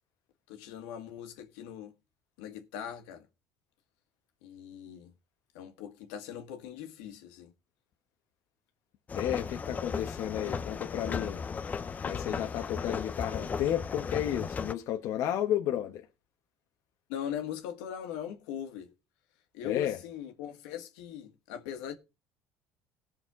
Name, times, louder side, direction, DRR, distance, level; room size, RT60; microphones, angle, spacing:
voice 1, 0.5-1.9 2.4-3.3 4.4-5.1 5.5-7.5 17.1-18.9 19.5-21.9, left 9 dB, 85° left, 1.7 m, -40 dB
voice 2, 9.1-11.4 12.0-16.1 19.6-20.0, left 11 dB, 60° left, 1.1 m, -32 dB
sound 1, 9.1-14.7, left 5 dB, 25° left, 0.7 m, -36 dB
18.5 x 6.5 x 3.7 m
supercardioid pair, 105°, 6 cm